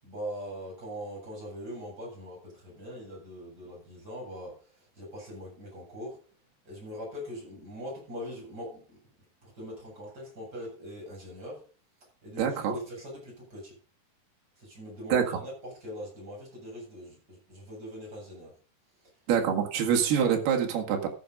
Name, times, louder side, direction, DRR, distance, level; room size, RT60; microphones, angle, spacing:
voice 1, 0.0-6.2 6.6-9.0 9.4-11.7 12.2-13.8 14.6-18.6, equal, 25° right, 8.4 m, -41 dB
voice 2, 12.4-12.8 15.1-15.2 19.3-21.1, right 8 dB, 75° right, 3.9 m, -25 dB
13.5 x 7.8 x 5.4 m
omnidirectional pair, 4.6 m